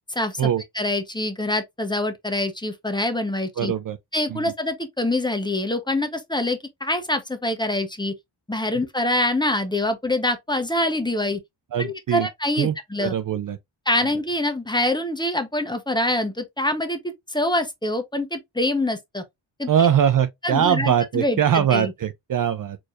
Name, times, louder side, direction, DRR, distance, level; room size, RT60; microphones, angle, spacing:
voice 1, 0.1-0.4 0.7-3.7 4.1-8.1 8.5-11.4 11.8-13.1 13.9-19.2 19.6-19.7 20.4-21.9, left 1 dB, 10° left, 0.9 m, -25 dB
voice 2, 3.6-4.0 4.3-4.4 11.7-12.3 12.6-13.6 19.7-22.8, right 9 dB, 45° right, 0.5 m, -22 dB
4.4 x 2.9 x 2.5 m
cardioid pair, 85°, 46 cm